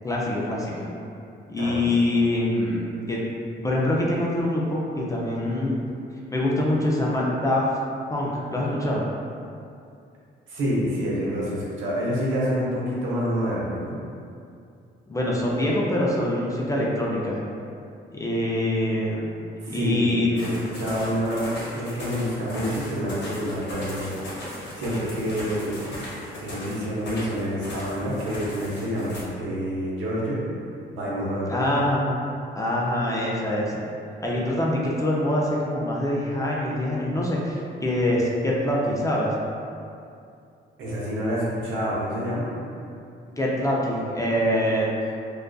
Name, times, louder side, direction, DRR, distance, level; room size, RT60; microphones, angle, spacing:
voice 1, 0.0-0.9 1.5-2.8 3.1-3.2 3.6-5.8 6.3-7.7 8.1-9.0 15.1-17.4 18.1-19.3 19.7-20.5 31.5-32.1 32.5-33.8 34.2-39.3 43.4-45.0, left 1 dB, 15° left, -4 dB, 0.4 m, -24 dB
voice 2, 10.5-14.0 19.6-24.1 24.8-26.0 26.4-30.4 30.9-31.6 40.8-42.5, equal, 75° right, -6 dB, 0.7 m, -27 dB
sound 1, 20.4-29.2, left 1 dB, 65° left, 0.8 m, -37 dB
2.4 x 2.3 x 2.2 m, 2.4 s
cardioid pair, 90°, 20 cm